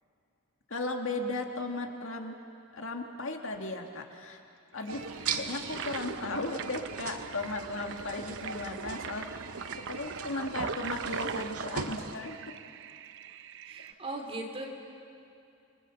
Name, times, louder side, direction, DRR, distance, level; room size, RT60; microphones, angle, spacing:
voice 1, 0.7-2.3 2.7-4.4 4.7-9.3 9.9-12.4, left 2 dB, 60° left, 3 dB, 2.0 m, -36 dB
Toilet flush, 4.8-13.9, right 6 dB, 55° right, 0.7 m, -41 dB
sound 1, 4.9-12.1, right 5 dB, 80° right, 1.6 m, -40 dB
voice 2, 13.7-14.7, right 2 dB, 25° right, 1 dB, 3.1 m, -38 dB
29.5 x 22.5 x 7.0 m, 2.6 s
head